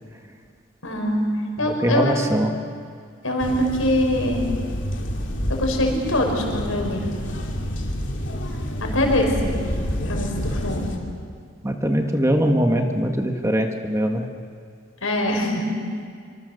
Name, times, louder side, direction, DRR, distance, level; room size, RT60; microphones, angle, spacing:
voice 1, 0.8-1.3 1.6-2.2 3.2-4.4 5.5-7.0 8.8-9.6 10.0-11.0 15.0-15.8, left 1 dB, 85° left, 2 dB, 5.5 m, -23 dB
voice 2, 1.6-2.5 11.6-14.2, equal, 15° right, 4 dB, 1.6 m, -21 dB
sound 1, 3.4-11.0, equal, 60° left, 2.9 m, -28 dB
25.5 x 24.5 x 6.7 m, 2.2 s
head